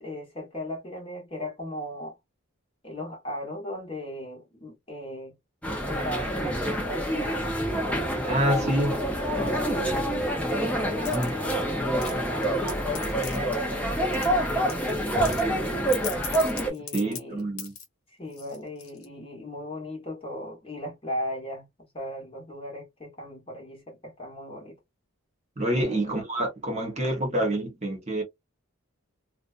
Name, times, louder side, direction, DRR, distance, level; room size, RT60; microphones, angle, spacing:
voice 1, 0.0-2.2 2.8-5.4 5.9-7.5 7.8-8.1 8.5-8.6 9.3-9.9 10.3-15.9 16.7-17.5 18.1-21.7 21.9-24.8 25.7-26.2, equal, 25° left, 1.0 m, -38 dB
sound 1, 5.6-16.7, right 1 dB, 5° left, 0.5 m, -27 dB
voice 2, 8.3-9.0 9.8-10.0 16.9-17.7 25.6-28.2, right 1 dB, 30° right, 0.9 m, -27 dB
sound 2, 11.0-11.6 12.0-13.4 14.0-14.3 14.7-17.8 18.3-19.1, left 6 dB, 75° left, 0.9 m, -38 dB
2.6 x 2.1 x 2.3 m
head